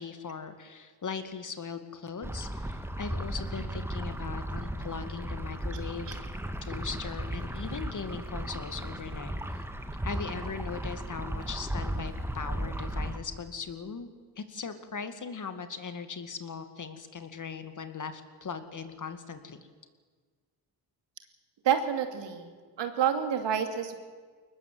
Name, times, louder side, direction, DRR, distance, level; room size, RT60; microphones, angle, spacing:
voice 1, 0.0-6.2 6.6-9.6 10.0-14.1 14.4-19.6, left 5 dB, 45° left, 9 dB, 2.3 m, -39 dB
sound 1, 2.2-13.2, right 1 dB, 5° right, 1.8 m, -35 dB
voice 2, 21.6-22.5 22.8-23.9, right 8 dB, 75° right, 7 dB, 2.6 m, -28 dB
22.5 x 20.0 x 7.9 m, 1.5 s
cardioid pair, 80°, 44 cm